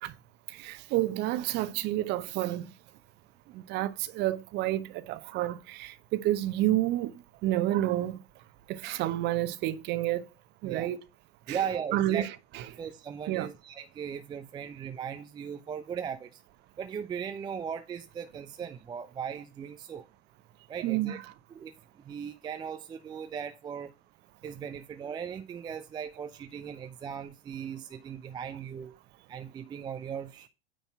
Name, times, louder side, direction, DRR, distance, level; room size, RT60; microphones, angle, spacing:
voice 1, 0.5-2.7 3.5-8.2 8.7-10.3 10.6-11.0 11.5-12.8 13.3-13.5 20.8-21.3, right 14 dB, 35° right, 0.9 m, -30 dB
voice 2, 11.5-12.3 12.8-16.3 16.8-20.0 20.7-21.2 21.5-21.7 22.0-23.9 24.4-28.9 29.3-30.5, right 7 dB, 15° right, 0.5 m, -38 dB
9.3 x 4.1 x 5.6 m
figure-of-eight pair, 100°, 31 cm